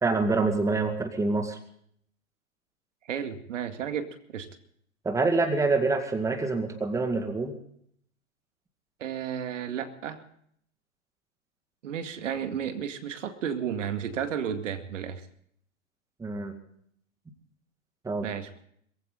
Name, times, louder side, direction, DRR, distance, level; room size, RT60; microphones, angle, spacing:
voice 1, 0.0-1.6 5.0-7.5 16.2-16.5 18.0-18.3, right 3 dB, 5° right, 7 dB, 2.0 m, -26 dB
voice 2, 3.0-4.5 9.0-10.2 11.8-15.3 18.2-18.5, right 8 dB, 65° right, 8 dB, 2.2 m, -33 dB
22.5 x 15.5 x 3.9 m, 0.66 s
hypercardioid pair, 115°, 41 cm